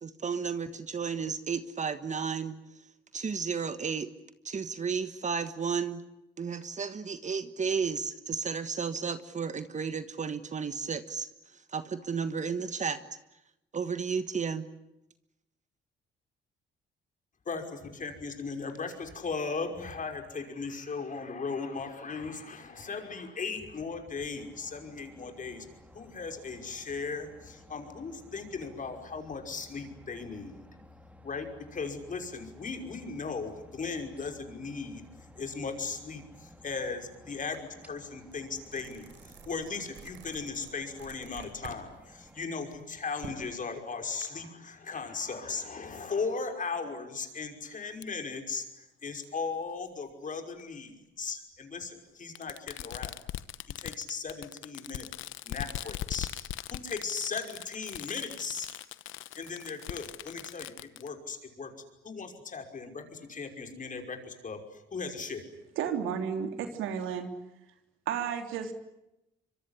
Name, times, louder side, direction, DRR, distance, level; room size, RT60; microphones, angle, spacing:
voice 1, 0.0-2.6 3.1-4.1 4.4-6.0 6.4-11.3 11.7-13.0 13.7-14.7, right 6 dB, 35° right, 11 dB, 1.4 m, -33 dB
voice 2, 17.5-25.7 25.9-30.6 31.2-53.1 53.8-55.1 55.4-56.3 56.7-58.7 59.3-61.7 62.0-65.5, left 4 dB, 40° left, 5 dB, 5.7 m, -37 dB
sound 1, 24.3-42.4, left 1 dB, 5° right, 3.1 m, -55 dB
sound 2, 37.5-37.7 38.1-41.8 42.2-44.2, right 6 dB, 70° right, 5.2 m, -49 dB
Fireworks, 48.0-48.1 49.2-49.3 50.6-50.7 52.3-61.1, left 14 dB, 85° left, 1.0 m, -40 dB
voice 3, 65.8-67.3 68.1-68.7, right 7 dB, 90° right, 6 dB, 3.2 m, -32 dB
25.0 x 23.5 x 10.0 m, 0.89 s
cardioid pair, 90°, 20 cm